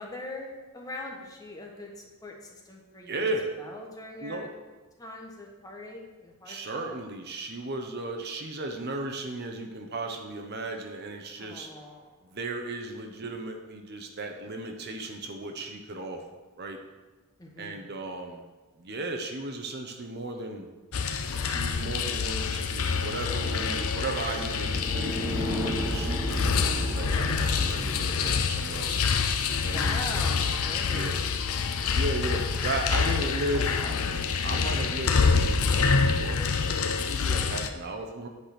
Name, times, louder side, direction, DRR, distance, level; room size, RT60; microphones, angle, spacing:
voice 1, 0.0-3.3 3.6-4.5 5.0-6.9 11.4-12.3 17.4-17.9 29.7-31.2 32.9-33.1 33.6-34.0, left 2 dB, 15° left, -1 dB, 1.3 m, -42 dB
voice 2, 3.1-3.5 4.2-4.5 6.5-11.7 12.3-16.2 16.6-16.8 17.6-18.4 18.8-20.7 21.4-29.0 29.6-30.0 30.5-30.6 30.9-31.2 31.9-33.7 34.4-38.3, right 2 dB, 50° right, 4 dB, 0.9 m, -35 dB
sound 1, 20.9-37.7, left 5 dB, 80° left, 0.7 m, -27 dB
sound 2, 22.9-28.3, equal, 15° right, 1.3 m, -34 dB
9.6 x 5.0 x 5.9 m, 1.2 s
head